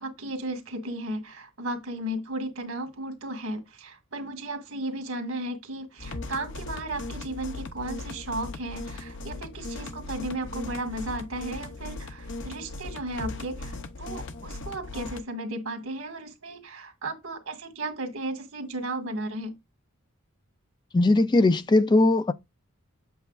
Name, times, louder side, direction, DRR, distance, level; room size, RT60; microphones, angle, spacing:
voice 1, 0.0-19.6, right 1 dB, 70° right, 1.8 m, -35 dB
sound 1, 6.0-15.2, left 2 dB, 60° left, 0.8 m, -38 dB
voice 2, 20.9-22.3, left 2 dB, 20° left, 0.3 m, -19 dB
8.0 x 6.6 x 2.4 m
head